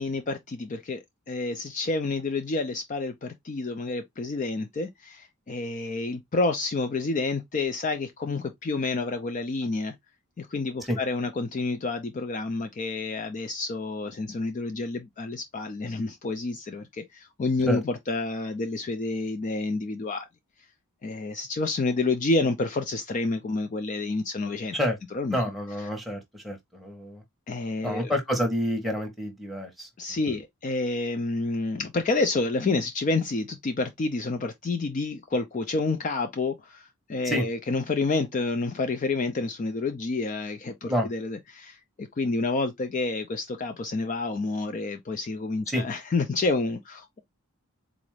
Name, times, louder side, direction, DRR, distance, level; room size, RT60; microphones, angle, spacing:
voice 1, 0.0-9.9 10.4-20.3 21.0-24.8 25.1-25.4 27.5-28.1 30.0-47.1, left 3 dB, 35° left, 0.3 m, -29 dB
voice 2, 25.3-27.2 27.8-29.9 37.2-37.4 40.9-41.1 45.7-45.8, equal, ahead, 0.9 m, -28 dB
3.9 x 2.5 x 3.1 m
head